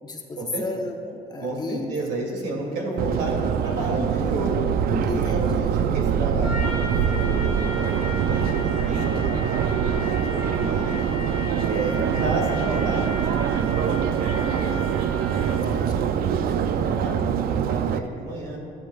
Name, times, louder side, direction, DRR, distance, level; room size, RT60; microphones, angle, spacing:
voice 1, 0.0-1.9 5.1-5.8 8.9-9.5 11.7-12.1 15.5-16.1, left 2 dB, 25° left, 2 dB, 1.1 m, -34 dB
voice 2, 1.4-4.5 4.9-11.1 11.7-14.8 15.3-18.6, right 2 dB, 80° right, -1 dB, 2.5 m, -32 dB
Subway metro underground, 3.0-18.0, right 8 dB, 60° right, 0.5 m, -24 dB
Trumpet, 6.4-15.8, left 1 dB, 30° right, 2.3 m, -36 dB
13.0 x 10.5 x 2.4 m, 2.5 s
cardioid pair, 110°, 17 cm